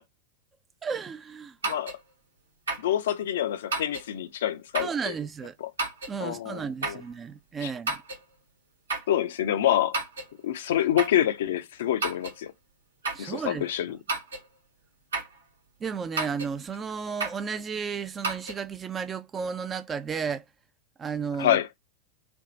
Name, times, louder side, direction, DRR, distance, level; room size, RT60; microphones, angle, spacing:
voice 1, 0.8-1.6 4.8-5.6 6.1-8.0 13.1-14.0 15.8-20.4 21.0-21.7, right 6 dB, 20° right, 0.3 m, -33 dB
sound 1, 1.6-2.0 2.7-2.9 3.7-4.1 4.7-5.0 5.8-6.2 6.8-7.1 7.9-8.2 8.9-9.1 9.9-10.3 11.0-11.3 12.0-12.4 13.0-13.3 14.1-14.5 15.1-15.4 16.2-16.5 17.2-17.5 18.2-18.6, right 3 dB, 70° right, 1.0 m, -31 dB
voice 2, 2.8-5.1 5.6-5.7 6.2-7.0 7.6-7.7 9.1-10.0 10.4-12.5 13.2-14.0 21.4-21.7, left 11 dB, 60° left, 0.4 m, -27 dB
3.4 x 2.3 x 3.8 m
figure-of-eight pair, 90°, 0 cm